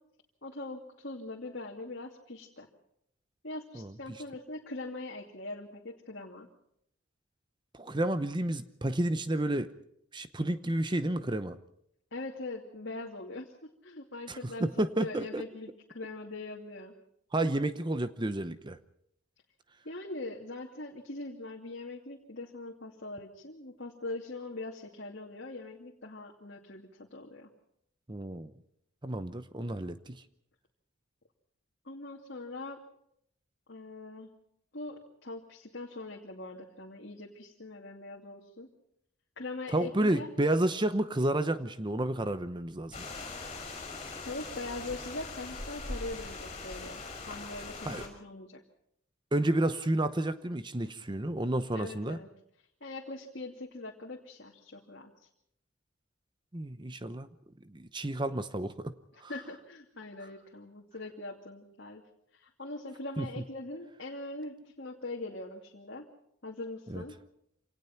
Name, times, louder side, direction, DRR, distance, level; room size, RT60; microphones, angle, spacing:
voice 1, 0.4-2.7 3.4-6.5 12.1-16.9 19.8-27.5 31.8-32.8 33.7-34.3 34.7-38.7 39.4-40.3 44.2-48.6 51.7-52.3 52.8-55.3 59.3-62.0 62.3-66.1 66.4-67.2, left 2 dB, 55° left, -1 dB, 2.6 m, -42 dB
voice 2, 7.7-9.7 10.1-11.6 14.3-15.4 17.3-18.8 28.1-28.5 29.0-30.2 39.7-43.1 47.8-48.0 49.3-52.2 56.5-57.3 57.6-58.9 59.2-59.3 63.2-63.3 66.9-67.0, right 1 dB, 20° right, 11 dB, 0.8 m, -31 dB
sound 1, 42.9-48.1, left 3 dB, 30° left, 6.2 m, -41 dB
26.5 x 18.5 x 5.9 m, 0.73 s
head